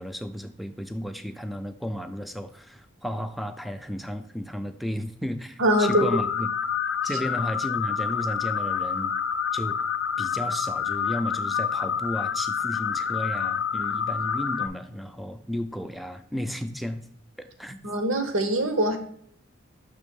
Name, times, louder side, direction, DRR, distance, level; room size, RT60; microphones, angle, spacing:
voice 1, 0.0-6.5 7.0-9.1 9.5-9.8 10.2-17.1 17.4-17.8, equal, ahead, 9 dB, 0.3 m, -33 dB
voice 2, 5.6-6.1 17.8-19.0, right 1 dB, 75° right, 7 dB, 0.9 m, -23 dB
sound 1, 5.7-14.7, left 7 dB, 65° left, 0.4 m, -28 dB
6.1 x 3.4 x 5.2 m, 0.63 s
head